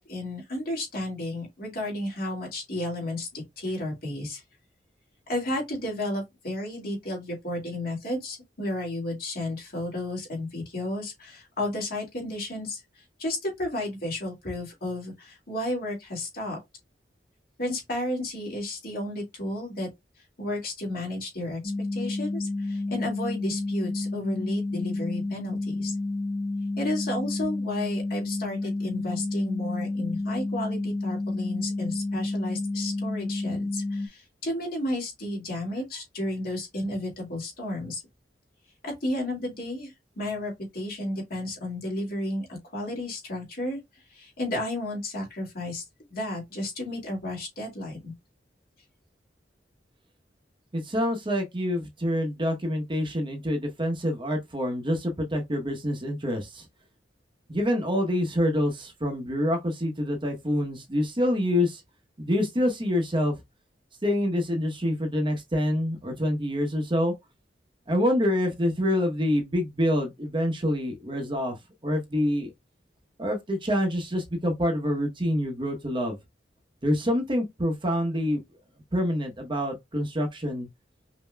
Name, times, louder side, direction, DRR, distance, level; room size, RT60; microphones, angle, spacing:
voice 1, 0.0-4.4 5.3-12.8 13.2-16.6 17.6-19.9 20.4-21.6 21.9-26.0 26.8-38.0 38.8-43.8 44.1-45.8 46.1-48.1, left 1 dB, 55° left, 2.2 m, -32 dB
sound 1, 21.6-34.1, left 2 dB, 30° left, 0.5 m, -30 dB
voice 2, 50.7-56.6 57.5-61.8 62.2-63.4 64.0-67.1 67.9-71.6 71.8-72.5 73.2-76.2 76.8-78.4 78.9-80.7, equal, 30° right, 0.9 m, -26 dB
5.5 x 2.8 x 2.2 m
head